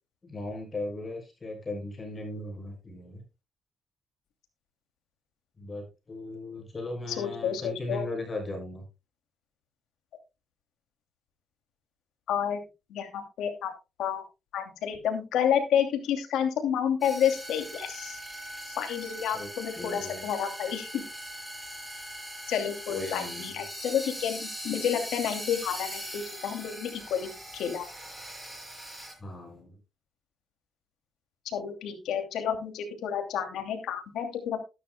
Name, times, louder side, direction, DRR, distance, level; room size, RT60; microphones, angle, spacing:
voice 1, 0.2-3.2 5.6-8.9 19.3-19.5 19.8-20.3 22.9-23.6 29.2-29.8, left 2 dB, 30° left, 1 dB, 6.5 m, -37 dB
voice 2, 7.2-8.1 12.3-12.6 12.9-13.7 14.0-14.2 14.5-18.2 18.7-21.0 22.5-27.9 31.4-34.6, left 8 dB, 85° left, 6 dB, 2.6 m, -30 dB
sound 1, 17.0-29.1, equal, 10° right, 7.1 m, -40 dB
13.0 x 12.5 x 2.2 m, 0.26 s
cardioid pair, 85°, 0 cm